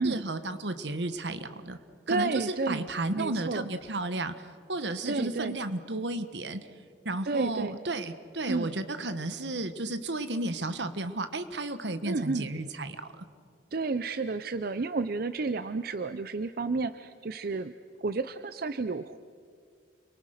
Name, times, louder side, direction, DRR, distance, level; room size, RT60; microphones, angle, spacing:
voice 1, 0.0-1.8 2.1-4.4 4.7-6.7 7.0-13.2, right 2 dB, 80° right, 11 dB, 1.4 m, -33 dB
voice 2, 2.1-2.9 3.1-3.6 5.1-5.6 7.2-7.8 8.5-8.7 12.0-12.5 13.7-17.7 18.0-19.2, right 3 dB, 60° right, 12 dB, 0.6 m, -31 dB
29.5 x 23.0 x 6.6 m, 2.2 s
head